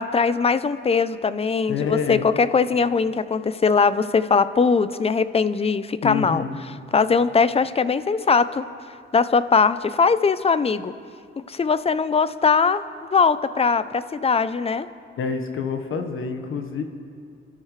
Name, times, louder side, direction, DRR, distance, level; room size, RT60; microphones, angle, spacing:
voice 1, 0.0-6.4 6.9-8.7 9.1-10.9 11.4-12.8 13.1-14.9, left 5 dB, 30° left, 14 dB, 0.6 m, -20 dB
voice 2, 1.7-2.2 6.0-6.6 15.2-16.8, left 6 dB, 75° left, 5 dB, 1.4 m, -27 dB
29.5 x 13.0 x 3.3 m, 2.3 s
cardioid pair, 95°, 21 cm